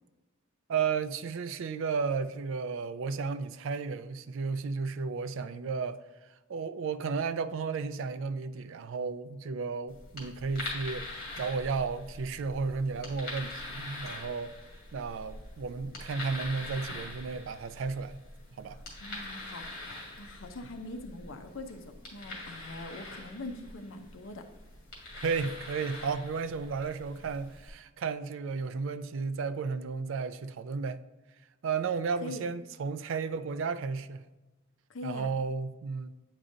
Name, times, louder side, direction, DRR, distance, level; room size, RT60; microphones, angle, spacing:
voice 1, 0.7-6.0 6.5-14.5 14.9-18.2 18.6-18.8 25.2-31.0 31.6-34.2 35.0-36.1, right 5 dB, 65° right, 0.3 m, -33 dB
sound 1, 9.9-27.7, left 2 dB, 45° left, 2.1 m, -44 dB
voice 2, 18.7-19.7 20.2-24.5 32.2-32.4 34.9-35.3, left 2 dB, 65° left, 0.6 m, -42 dB
8.9 x 4.9 x 2.7 m
head